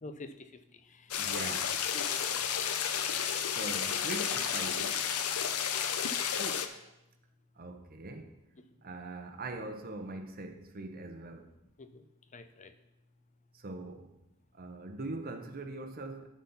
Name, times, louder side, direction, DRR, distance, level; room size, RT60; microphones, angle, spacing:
voice 1, 0.0-1.1 1.9-2.1 6.4-6.8 8.5-8.6 11.8-12.0 12.3-12.7, left 2 dB, 35° left, 0.6 m, -47 dB
sound 1, 1.1-6.7, left 8 dB, 85° left, 0.7 m, -32 dB
voice 2, 1.2-1.7 3.5-5.1 7.6-8.3 8.8-11.5 13.5-14.1 14.5-16.3, right 2 dB, 45° right, 0.9 m, -42 dB
11.5 x 4.2 x 5.6 m
head